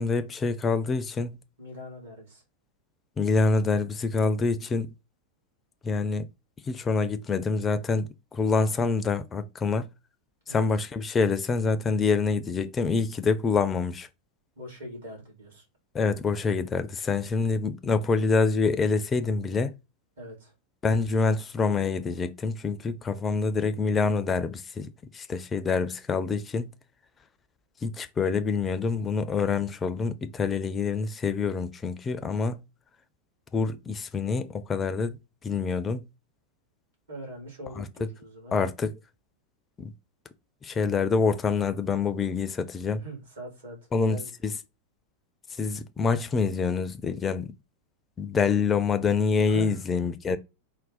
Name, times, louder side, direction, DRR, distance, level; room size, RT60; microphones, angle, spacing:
voice 1, 0.0-1.4 3.2-4.9 5.8-6.3 6.7-9.9 10.5-14.1 15.9-19.7 20.8-26.7 27.8-32.6 33.5-35.2 35.4-36.1 37.8-37.9 38.5-38.9 39.8-39.9 40.6-43.0 43.9-44.5 45.6-47.5 48.2-50.4, left 4 dB, 20° left, 0.4 m, -26 dB
voice 2, 1.6-2.4 10.5-10.7 14.6-15.6 20.2-20.5 37.1-38.5 43.0-44.3 49.4-49.8, equal, 65° right, 2.0 m, -42 dB
3.6 x 2.1 x 4.0 m
figure-of-eight pair, 90°, 0 cm